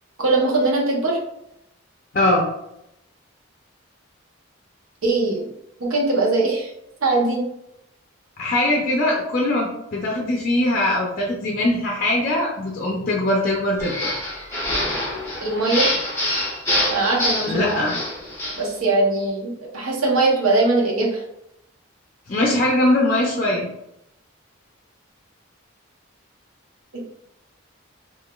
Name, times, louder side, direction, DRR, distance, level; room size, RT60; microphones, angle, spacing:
voice 1, 0.2-1.2 5.0-5.4 5.8-6.7 7.0-7.5 15.4-15.9 16.9-17.8 18.5-21.2, right 2 dB, 85° right, -2 dB, 0.9 m, -21 dB
voice 2, 2.1-2.5 8.4-14.1 17.5-17.9 22.3-23.7, left 1 dB, 45° left, -2 dB, 0.5 m, -21 dB
sound 1, 13.8-18.7, left 1 dB, 10° left, 0.8 m, -25 dB
3.8 x 2.5 x 2.3 m, 0.82 s
head